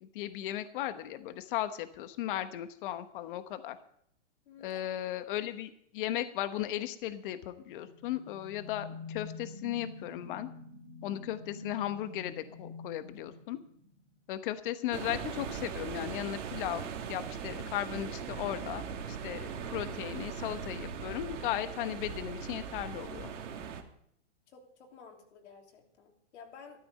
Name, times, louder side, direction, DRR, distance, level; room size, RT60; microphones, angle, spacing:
voice 1, 0.0-3.8 4.6-10.5 11.0-13.6 14.3-23.3, left 13 dB, 45° left, 11 dB, 1.2 m, -36 dB
voice 2, 4.4-4.9 24.5-26.8, left 5 dB, 65° left, 2 dB, 3.4 m, -53 dB
sound 1, 7.6-14.1, left 3 dB, 25° left, 3.2 m, -47 dB
sound 2, 14.9-23.8, right 7 dB, 80° right, 2.1 m, -40 dB
13.0 x 12.5 x 5.4 m, 0.68 s
hypercardioid pair, 150°, 36 cm